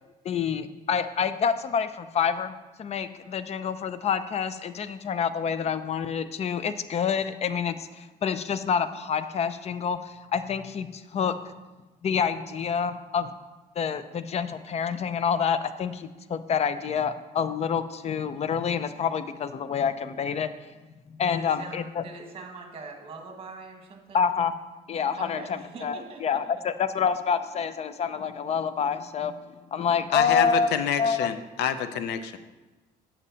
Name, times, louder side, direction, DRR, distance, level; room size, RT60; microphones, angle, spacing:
voice 1, 0.2-11.3 12.0-13.3 13.8-20.7 21.1-22.0 24.1-24.5 24.9-29.3 29.7-30.7 31.0-31.3, left 6 dB, 40° left, 12 dB, 0.5 m, -27 dB
voice 2, 21.2-24.3 25.2-26.4, right 3 dB, 35° right, 3 dB, 1.6 m, -42 dB
voice 3, 30.1-32.4, left 9 dB, 85° left, 11 dB, 0.6 m, -27 dB
8.6 x 7.4 x 4.0 m, 1.2 s
cardioid pair, 110°, 17 cm